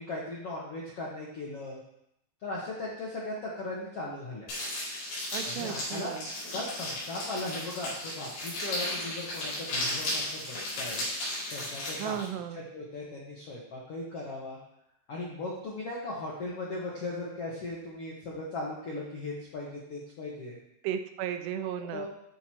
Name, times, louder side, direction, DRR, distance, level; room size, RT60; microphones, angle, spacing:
voice 1, 0.0-1.8 2.4-4.5 5.4-6.1 6.5-11.0 11.5-12.2 12.5-14.6 15.1-20.6 21.9-22.1, left 2 dB, 70° left, -4 dB, 1.4 m, -38 dB
sound 1, 4.5-12.3, left 1 dB, 90° left, 6.5 m, -35 dB
voice 2, 5.3-6.3 12.0-12.7 20.8-22.1, right 9 dB, 85° right, 8 dB, 2.9 m, -35 dB
13.5 x 4.8 x 4.4 m, 0.77 s
omnidirectional pair, 4.8 m